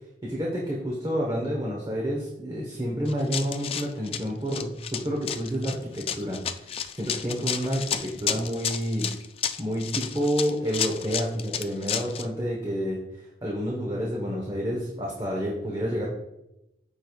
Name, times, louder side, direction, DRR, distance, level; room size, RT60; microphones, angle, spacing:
voice 1, 0.2-9.1 9.6-13.0 13.4-16.1, equal, 25° right, -3 dB, 1.0 m, -29 dB
Run, 3.1-12.3, left 8 dB, 35° left, 0.3 m, -31 dB
13.5 x 4.6 x 2.3 m, 0.90 s
head